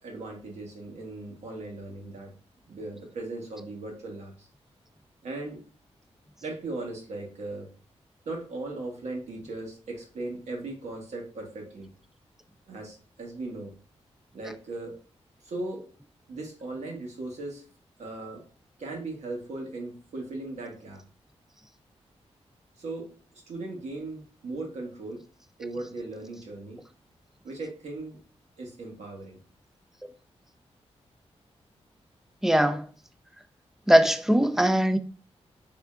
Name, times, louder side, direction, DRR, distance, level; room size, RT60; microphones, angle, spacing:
voice 1, 0.0-2.3 2.7-4.5 5.2-5.6 6.4-7.7 8.2-11.9 12.7-13.7 14.3-15.0 15.4-15.8 16.3-17.6 18.0-18.4 18.8-21.0 22.8-25.2 25.6-26.8 27.4-28.2 28.6-29.4, right 2 dB, 85° right, 1.2 m, -38 dB
voice 2, 32.4-32.9 33.9-35.0, right 1 dB, 5° right, 0.4 m, -20 dB
3.7 x 3.3 x 2.4 m
cardioid pair, 90°, 11 cm